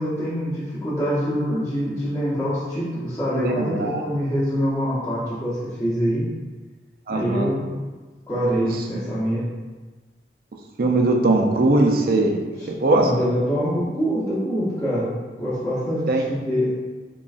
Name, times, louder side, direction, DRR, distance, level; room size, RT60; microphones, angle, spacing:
voice 1, 0.0-6.3 7.1-7.7 8.3-9.4 13.0-15.1 15.4-16.7, equal, 20° left, -11 dB, 0.8 m, -25 dB
voice 2, 3.3-4.0 7.1-7.5 10.8-12.4 12.7-13.1 16.1-16.2, right 2 dB, 55° right, 1 dB, 0.5 m, -20 dB
3.8 x 3.1 x 2.4 m, 1.3 s
head